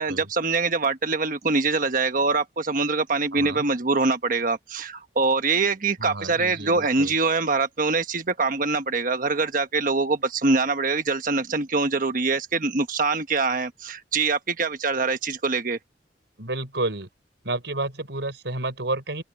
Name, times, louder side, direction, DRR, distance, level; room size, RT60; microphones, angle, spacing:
voice 1, 0.0-15.8, right 3 dB, 50° right, 1.2 m, -24 dB
voice 2, 3.3-3.7 6.0-7.1 16.4-17.1 17.4-19.2, right 2 dB, 85° right, 4.9 m, -30 dB
open air
head